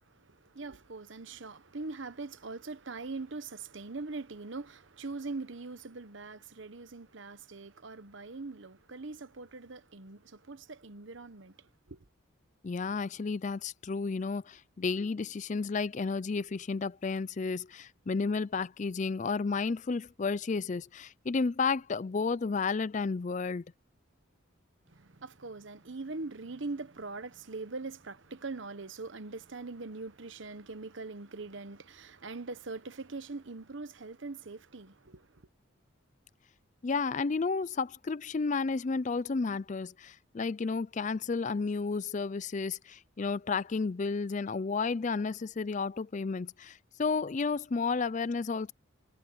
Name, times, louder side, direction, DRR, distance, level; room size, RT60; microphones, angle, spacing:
voice 1, 0.1-12.0 24.9-35.4, right 3 dB, 65° right, 1.0 m, -42 dB
voice 2, 12.6-23.6 36.8-48.7, left 4 dB, 35° left, 0.4 m, -32 dB
head